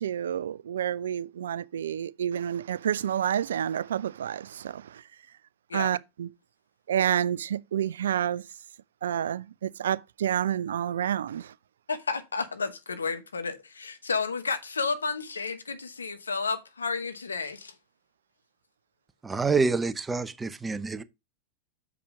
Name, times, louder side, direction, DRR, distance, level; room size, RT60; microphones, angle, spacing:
voice 1, 0.0-4.8 5.7-6.3 6.9-8.4 9.0-11.5, right 9 dB, 75° right, 0.4 m, -29 dB
voice 2, 11.9-17.8, left 4 dB, 85° left, 0.9 m, -31 dB
voice 3, 19.2-21.0, right 4 dB, 15° right, 0.6 m, -27 dB
7.0 x 5.0 x 4.7 m
hypercardioid pair, 95°, 0 cm